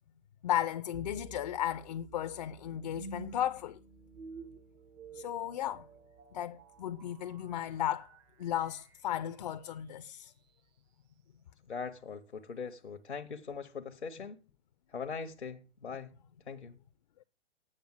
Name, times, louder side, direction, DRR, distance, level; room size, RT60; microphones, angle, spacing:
voice 1, 0.4-3.8 5.1-5.9 6.3-8.1 8.4-10.3, left 11 dB, 40° left, 0.5 m, -35 dB
sound 1, 0.9-10.0, right 4 dB, 15° right, 0.5 m, -51 dB
voice 2, 11.7-14.4 14.9-16.1 16.5-16.8, left 5 dB, 80° left, 1.0 m, -41 dB
8.7 x 6.9 x 7.8 m
figure-of-eight pair, 115°, 33 cm